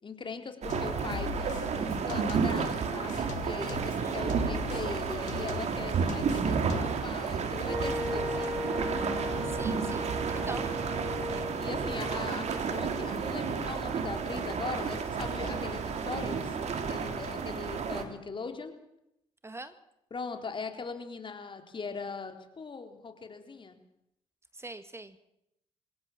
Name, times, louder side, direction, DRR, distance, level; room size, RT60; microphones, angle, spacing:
voice 1, 0.0-8.6 11.3-18.7 20.1-23.8, left 4 dB, 40° left, 6 dB, 4.0 m, -40 dB
sound 1, 0.6-18.0, right 5 dB, 65° right, 3.5 m, -31 dB
sound 2, 0.7-2.7 3.1-7.1, left 12 dB, 85° left, 1.2 m, -41 dB
voice 2, 3.8-4.2 9.5-10.7 19.4-19.7 24.5-25.2, right 2 dB, 20° right, 11 dB, 1.9 m, -43 dB
Wind instrument woodwind instrument, 7.7-13.5, left 2 dB, 5° right, 3.9 m, -37 dB
26.0 x 17.5 x 7.5 m, 0.81 s
supercardioid pair, 60°, 12 cm